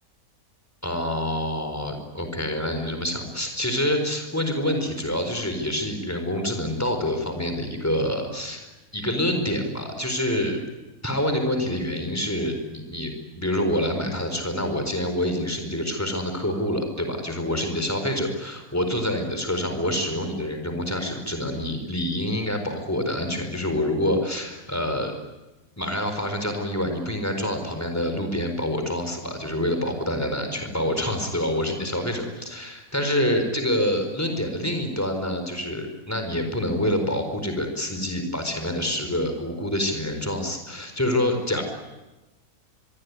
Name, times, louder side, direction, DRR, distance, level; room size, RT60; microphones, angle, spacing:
voice 1, 0.8-10.6 11.0-25.1 25.8-41.6, left 1 dB, 10° left, 5 dB, 4.4 m, -27 dB
25.0 x 23.0 x 9.7 m, 1.1 s
omnidirectional pair, 1.6 m